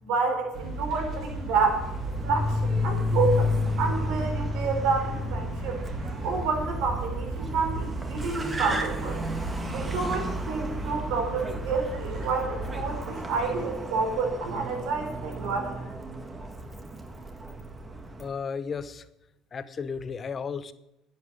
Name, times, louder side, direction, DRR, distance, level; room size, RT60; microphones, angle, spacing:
voice 1, 0.0-1.8 2.2-3.5 3.8-5.8 6.2-9.2 9.7-15.8, right 4 dB, 80° right, 3 dB, 4.0 m, -29 dB
sound 1, 0.5-13.0, right 2 dB, 45° right, 3.3 m, -35 dB
Car, 1.5-18.3, left 1 dB, 20° right, 1.7 m, -32 dB
voice 2, 18.2-19.1 19.5-20.7, left 6 dB, 35° left, 13 dB, 0.9 m, -34 dB
11.0 x 8.6 x 8.5 m, 0.89 s
cardioid pair, 115°, 0 cm